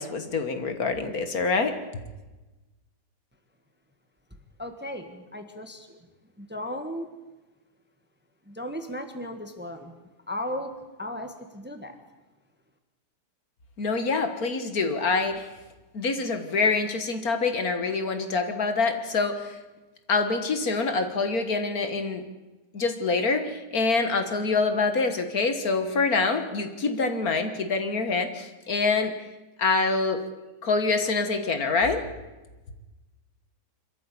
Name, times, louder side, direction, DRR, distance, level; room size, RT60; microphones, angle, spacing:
voice 1, 0.0-1.8 13.8-15.5 15.9-19.5 20.1-22.2 22.7-29.1 29.6-30.2 30.6-32.1, left 4 dB, 60° left, 8 dB, 1.9 m, -25 dB
voice 2, 4.6-6.0 6.4-7.1 8.5-9.9 10.3-10.7 11.0-11.9, left 1 dB, 5° right, 6 dB, 1.4 m, -35 dB
25.0 x 13.5 x 8.5 m, 1.1 s
omnidirectional pair, 1.9 m